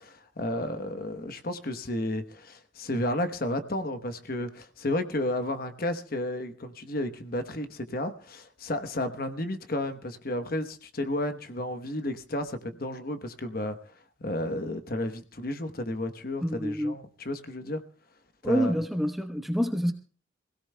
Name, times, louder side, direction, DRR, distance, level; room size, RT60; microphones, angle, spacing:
voice 1, 0.0-13.8 14.2-17.8 18.4-18.7, left 1 dB, 50° left, 1.0 m, -32 dB
voice 2, 16.4-17.0 18.4-19.9, equal, ahead, 1.0 m, -27 dB
26.0 x 17.0 x 2.2 m
head